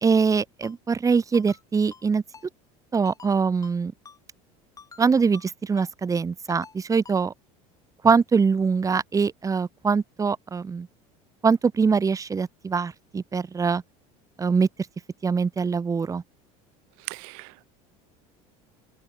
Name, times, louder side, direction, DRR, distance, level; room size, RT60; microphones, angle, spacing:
voice 1, 0.0-2.2 2.9-3.9 5.0-7.3 8.0-10.9 11.4-13.8 14.4-14.7 15.2-16.2, right 5 dB, 20° right, 1.7 m, -23 dB
Ringtone, 0.6-0.7 1.3-1.6 1.9-2.0 2.3-2.5 3.1-3.3 3.6-3.8 4.1-4.2 4.8-5.0 5.3-5.5 5.8-5.9 6.5-6.8 7.1-7.2, left 5 dB, 20° left, 4.3 m, -47 dB
voice 2, 17.1-17.7, right 35 dB, 80° right, 0.9 m, -38 dB
supercardioid pair, 125°, 17 cm